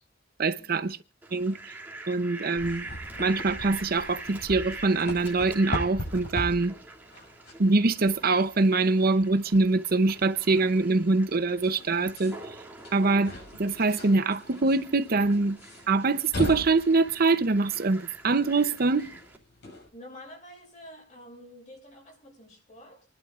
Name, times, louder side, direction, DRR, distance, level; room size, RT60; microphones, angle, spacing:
voice 1, 0.4-1.0 1.3-1.7 2.1-2.9 3.2-6.7 7.6-12.6 12.9-13.3 13.6-15.6 15.9-19.1, right 3 dB, 55° right, 0.7 m, -24 dB
Fowl, 1.2-19.4, right 2 dB, 10° right, 3.0 m, -45 dB
sound 1, 2.5-19.9, left 1 dB, 65° left, 6.4 m, -40 dB
voice 2, 19.9-23.1, equal, 40° left, 6.0 m, -48 dB
28.0 x 11.0 x 2.5 m
head